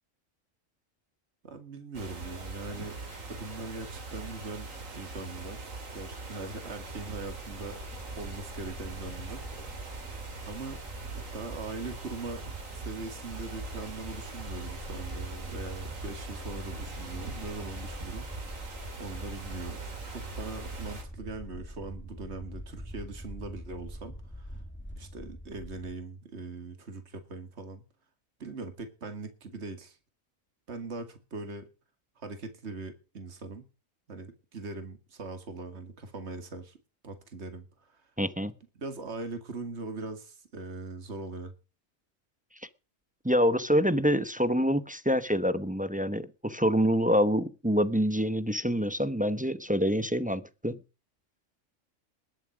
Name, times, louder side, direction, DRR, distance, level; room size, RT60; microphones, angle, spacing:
voice 1, 1.4-3.0 3.2-4.7 4.9-7.8 8.2-9.8 10.5-10.8 11.3-12.4 12.7-18.3 19.0-19.9 20.1-24.5 25.0-27.8 28.4-30.0 30.7-31.7 32.2-33.6 34.1-36.8 37.0-38.0 38.8-41.5, right 3 dB, 55° right, 2.4 m, -41 dB
sound 1, 1.9-21.0, right 3 dB, 75° right, 3.0 m, -41 dB
sound 2, 6.6-25.9, equal, 10° left, 1.9 m, -45 dB
voice 2, 38.2-38.5 43.2-50.8, equal, 10° right, 0.7 m, -26 dB
21.0 x 7.5 x 6.2 m
omnidirectional pair, 1.4 m